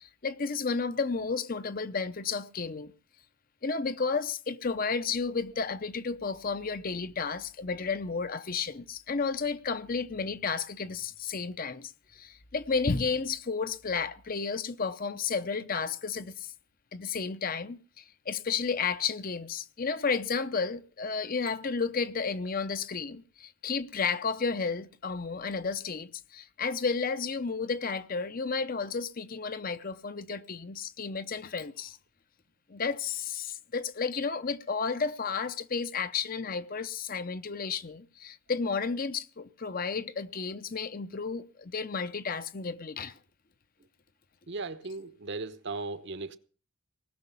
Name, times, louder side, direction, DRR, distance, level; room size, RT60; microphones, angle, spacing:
voice 1, 0.0-2.9 3.6-16.5 16.9-32.0 32.7-43.2, left 5 dB, 40° left, 0.7 m, -32 dB
voice 2, 44.5-46.4, right 3 dB, 50° right, 0.9 m, -37 dB
19.0 x 6.5 x 8.2 m
head